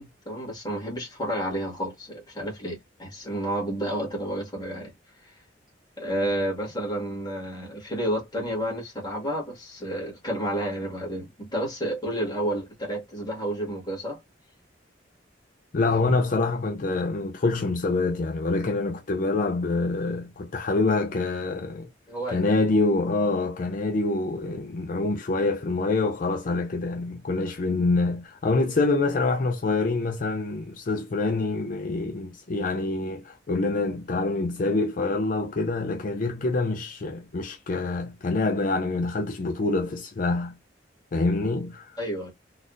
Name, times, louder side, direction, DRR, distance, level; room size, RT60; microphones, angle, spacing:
voice 1, 0.0-4.9 5.2-5.3 6.0-14.2 22.1-22.4 42.0-42.3, right 1 dB, 20° left, 1.7 m, -30 dB
voice 2, 15.7-21.9 22.3-40.5 41.1-42.0, left 3 dB, 45° left, 0.4 m, -26 dB
3.9 x 2.4 x 2.5 m
head